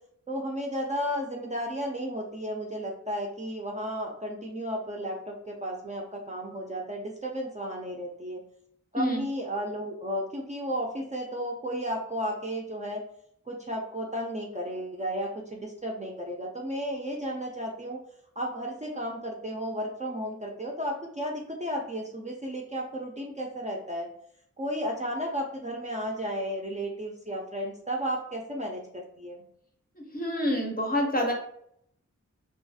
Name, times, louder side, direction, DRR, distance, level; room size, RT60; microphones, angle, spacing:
voice 1, 0.3-8.4 8.9-13.0 13.5-18.0 18.4-24.1 24.6-29.4, equal, 25° right, -1 dB, 0.4 m, -33 dB
voice 2, 30.0-31.3, equal, 30° left, 1 dB, 0.6 m, -27 dB
2.3 x 2.3 x 2.6 m, 0.68 s
wide cardioid pair, 100°, 31 cm